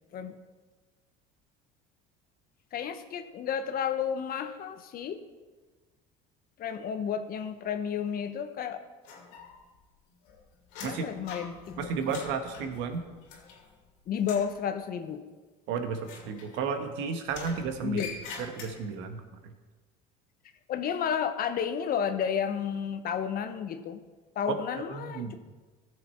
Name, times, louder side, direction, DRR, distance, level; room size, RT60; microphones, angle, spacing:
voice 1, 2.7-5.2 6.6-8.8 10.8-11.6 14.1-15.2 17.8-18.1 20.7-24.0 24.3-25.3, left 8 dB, 50° left, 9 dB, 1.0 m, -31 dB
sound 1, 9.0-9.8 10.1-13.9 14.2-14.6 16.0-16.9 17.3-19.1, left 5 dB, 85° left, 2.6 m, -44 dB
voice 2, 11.8-13.0 15.7-16.0 16.3-18.0 18.6-19.2 24.9-25.3, right 5 dB, 70° right, 6 dB, 1.4 m, -32 dB
15.0 x 6.8 x 4.4 m, 1.3 s
supercardioid pair, 105°, 20 cm